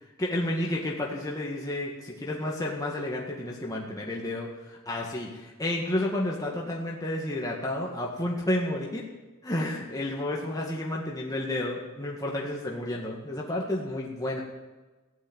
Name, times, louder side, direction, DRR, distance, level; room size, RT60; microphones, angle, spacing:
voice 1, 0.2-9.0 9.4-14.4, left 1 dB, 15° left, -2 dB, 1.8 m, -31 dB
16.0 x 8.9 x 8.7 m, 1.2 s
head